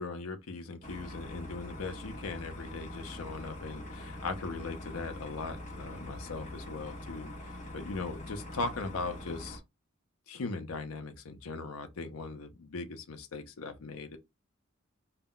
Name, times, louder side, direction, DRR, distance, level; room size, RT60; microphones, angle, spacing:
voice 1, 0.0-7.3 7.7-9.6 10.3-14.2, left 3 dB, 90° left, 0.5 m, -39 dB
sound 1, 0.8-9.6, left 1 dB, 35° left, 0.7 m, -43 dB
2.2 x 2.1 x 3.6 m
head